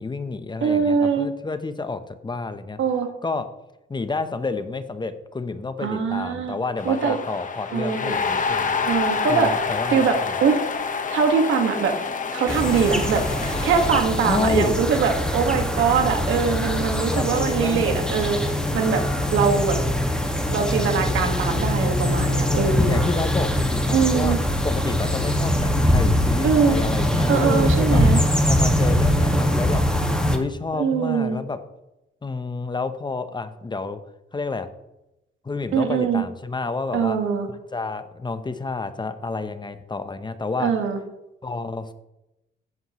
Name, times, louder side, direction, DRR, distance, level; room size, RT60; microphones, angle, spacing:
voice 1, 0.0-2.8 3.2-3.6 3.9-8.8 9.3-10.3 14.2-14.8 17.1-18.0 22.4-24.4 24.6-28.0 28.5-29.9 30.3-31.6 32.2-34.7 35.4-37.2 37.5-40.8 41.4-41.9, left 3 dB, 20° left, 10 dB, 0.8 m, -29 dB
voice 2, 0.6-1.3 2.8-3.1 5.8-6.6 6.9-7.2 7.7-8.2 8.8-9.5 9.9-10.6 11.1-11.9 12.3-19.0 19.3-19.8 20.5-23.0 23.9-24.4 26.4-26.8 27.3-28.2 30.7-31.4 35.7-36.2 36.9-37.5 40.6-41.0, right 6 dB, 75° right, 5 dB, 1.7 m, -22 dB
sound 1, 6.8-14.0, left 5 dB, 40° left, 1.2 m, -27 dB
sound 2, 12.5-30.4, equal, 5° left, 1.8 m, -22 dB
15.0 x 8.4 x 3.1 m, 0.93 s
cardioid pair, 90°, 20 cm